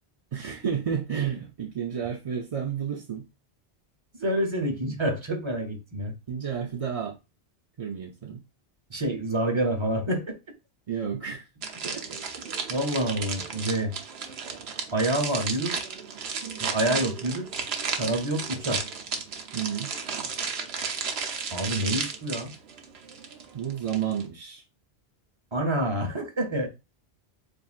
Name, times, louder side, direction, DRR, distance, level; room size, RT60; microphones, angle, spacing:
voice 1, 0.3-3.3 6.3-7.2 7.8-8.4 10.9-11.5 11.8-12.2 19.5-19.9 23.5-24.6, right 8 dB, 45° right, 0.5 m, -31 dB
voice 2, 4.2-6.1 8.9-10.4 12.7-13.9 14.9-15.8 16.6-17.5 17.9-18.8 21.5-22.5 25.5-26.7, right 1 dB, 30° right, 0.9 m, -27 dB
sound 1, 11.6-24.3, right 5 dB, 75° right, 1.0 m, -33 dB
7.2 x 2.6 x 2.4 m
omnidirectional pair, 1.1 m